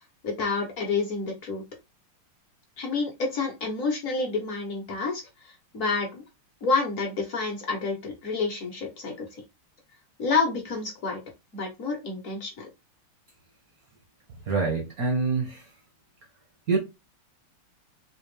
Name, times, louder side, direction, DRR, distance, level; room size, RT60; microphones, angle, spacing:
voice 1, 0.2-1.6 2.8-6.2 6.6-9.4 10.2-11.2 11.5-12.7, left 4 dB, 50° left, 1.1 m, -29 dB
voice 2, 14.5-15.6 16.7-16.8, right 4 dB, 60° right, 0.9 m, -25 dB
4.1 x 2.4 x 3.2 m
omnidirectional pair, 2.4 m